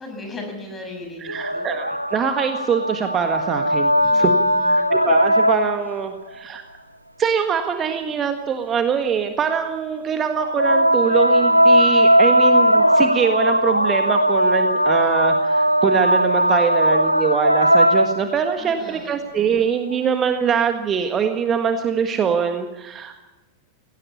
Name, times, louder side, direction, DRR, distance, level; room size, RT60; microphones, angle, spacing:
voice 1, 0.0-1.8 4.0-4.9 18.6-19.1, left 2 dB, 20° left, 3 dB, 6.9 m, -37 dB
voice 2, 1.2-4.3 4.7-6.6 7.2-23.2, right 7 dB, 25° right, 6 dB, 1.6 m, -23 dB
sound 1, 1.3-6.0 10.4-18.6 19.9-20.0, equal, 90° right, 0.6 m, -18 dB
18.0 x 17.5 x 8.4 m, 1.1 s
figure-of-eight pair, 90°, 0 cm